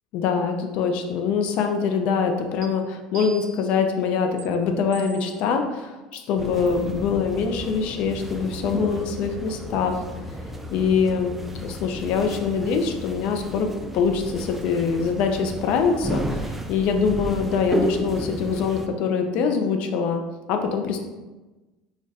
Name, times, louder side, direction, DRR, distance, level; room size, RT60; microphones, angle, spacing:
voice 1, 0.1-10.0 10.7-11.3 11.6-13.7 13.9-20.2 20.5-21.0, left 5 dB, 60° left, 5 dB, 0.4 m, -24 dB
sound 1, 2.6-2.7 3.1-3.8 4.4-4.5 4.9-5.4 6.1-6.2 6.7-6.9, right 4 dB, 75° right, 0.5 m, -41 dB
sound 2, 6.4-18.9, right 1 dB, 10° right, 0.3 m, -33 dB
2.4 x 2.1 x 3.9 m, 1.2 s
hypercardioid pair, 85°, 2 cm